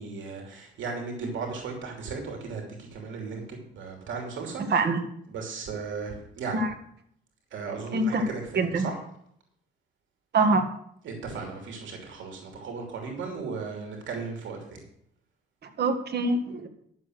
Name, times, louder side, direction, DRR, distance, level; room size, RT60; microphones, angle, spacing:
voice 1, 0.0-4.8 5.3-6.6 7.5-9.0 11.0-14.8, right 4 dB, 75° right, 2 dB, 2.9 m, -36 dB
voice 2, 4.7-5.0 6.5-6.7 7.9-8.2 8.6-8.9 10.3-10.7 15.8-16.7, right 3 dB, 55° right, 6 dB, 1.8 m, -24 dB
11.5 x 7.2 x 6.4 m, 0.69 s
cardioid pair, 90°, 20 cm